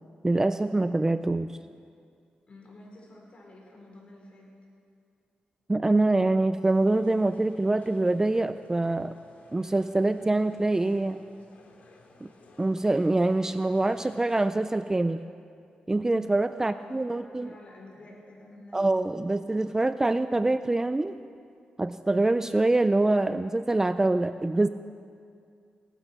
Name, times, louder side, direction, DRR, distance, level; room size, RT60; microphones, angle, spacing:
voice 1, 0.2-1.5 5.7-9.1 9.5-11.2 12.2-12.3 12.6-15.2 15.9-17.5 18.7-21.1 21.8-24.7, right 2 dB, 15° right, 12 dB, 0.4 m, -25 dB
voice 2, 2.5-4.5 16.6-18.8, left 1 dB, 40° left, -2 dB, 4.9 m, -50 dB
sound 1, 6.7-14.5, left 3 dB, 65° left, 2.3 m, -55 dB
18.0 x 12.0 x 6.1 m, 2.3 s
cardioid pair, 85°, 3 cm